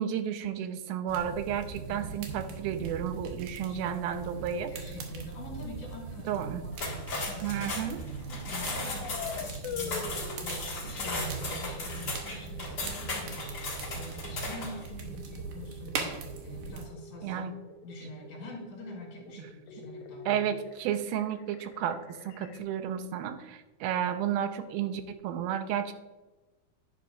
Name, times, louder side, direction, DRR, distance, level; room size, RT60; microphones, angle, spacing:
voice 1, 0.0-4.7 6.3-6.7 7.4-8.0 17.2-17.5 20.3-25.9, right 9 dB, 85° right, 9 dB, 2.4 m, -32 dB
sound 1, 1.1-16.8, right 5 dB, 70° right, 2.6 m, -40 dB
voice 2, 3.5-3.9 4.7-7.9 8.2-13.5 13.9-17.5 17.8-20.4, left 2 dB, 60° left, -1 dB, 4.0 m, -45 dB
sound 2, 6.7-14.8, left 3 dB, 35° left, 1.8 m, -37 dB
sound 3, 8.8-10.4 10.9-22.6, left 5 dB, 85° left, 2.7 m, -45 dB
10.5 x 9.9 x 2.6 m, 1.2 s
omnidirectional pair, 4.2 m